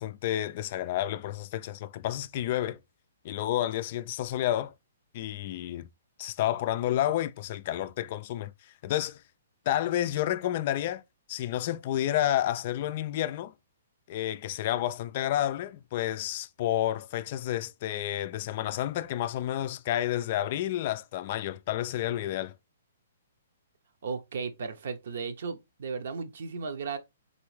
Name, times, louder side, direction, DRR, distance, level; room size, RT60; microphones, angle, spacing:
voice 1, 0.0-2.8 3.2-4.7 5.1-5.9 6.2-8.5 8.8-9.2 9.7-11.0 11.3-13.5 14.1-22.5, left 12 dB, 45° left, 0.3 m, -30 dB
voice 2, 24.0-27.0, right 5 dB, 65° right, 0.8 m, -35 dB
4.2 x 3.4 x 3.1 m
hypercardioid pair, 135°, 0 cm